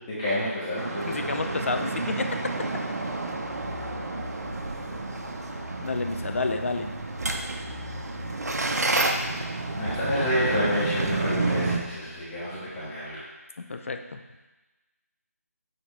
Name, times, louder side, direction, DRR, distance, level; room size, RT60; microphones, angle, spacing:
voice 1, 0.0-1.4 9.7-13.2, left 1 dB, 15° left, -11 dB, 1.6 m, -29 dB
sound 1, 0.8-11.8, right 2 dB, 75° right, 0.8 m, -30 dB
voice 2, 1.1-2.3 5.8-6.9 13.7-14.2, left 3 dB, 50° left, 7 dB, 0.6 m, -29 dB
sound 2, 2.5-10.5, equal, 20° right, 2.1 m, -41 dB
8.9 x 4.2 x 3.2 m, 1.1 s
figure-of-eight pair, 165°, 9 cm